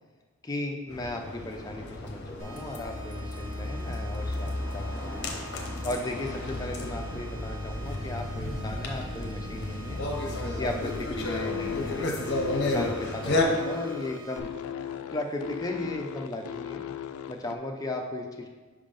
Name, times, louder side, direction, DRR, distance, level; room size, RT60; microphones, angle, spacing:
voice 1, 0.4-5.3 5.8-10.0 10.6-12.1 12.6-14.5 15.1-16.8 17.3-18.5, left 1 dB, 15° left, 2 dB, 0.5 m, -36 dB
sound 1, 0.9-13.4, left 2 dB, 55° left, 0.8 m, -32 dB
sound 2, 2.4-14.4, right 2 dB, 65° right, 0.7 m, -47 dB
sound 3, 10.8-17.6, left 9 dB, 90° left, 0.3 m, -36 dB
5.0 x 3.6 x 5.1 m, 1.4 s
head